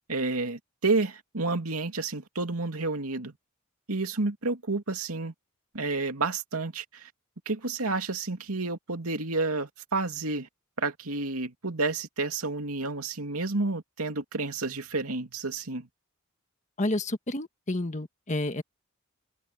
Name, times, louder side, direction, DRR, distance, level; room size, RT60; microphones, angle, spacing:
voice 1, 0.1-3.3 3.9-5.3 5.7-7.1 7.5-10.5 10.8-15.9, right 3 dB, 90° right, 2.7 m, -30 dB
voice 2, 16.8-18.6, left 1 dB, 35° left, 1.6 m, -30 dB
open air
head